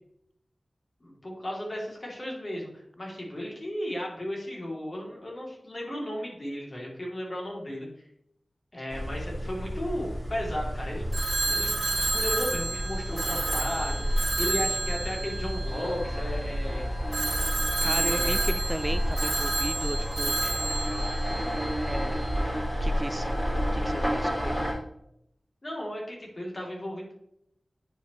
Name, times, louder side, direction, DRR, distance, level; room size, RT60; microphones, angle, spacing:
voice 1, 1.0-7.9 8.7-11.1 11.5-16.9 17.9-18.4 20.4-20.6 25.6-27.1, left 1 dB, 45° left, -3 dB, 2.9 m, -35 dB
sound 1, 8.9-24.7, equal, 10° left, 2.8 m, -31 dB
Telephone, 11.1-16.4 17.1-22.0, right 3 dB, 90° right, 0.9 m, -30 dB
voice 2, 17.8-20.3 21.8-22.5 22.8-23.4 23.7-24.7, right 1 dB, 20° right, 10 dB, 0.3 m, -35 dB
9.7 x 5.2 x 3.1 m, 0.75 s
wide cardioid pair, 80°, 0 cm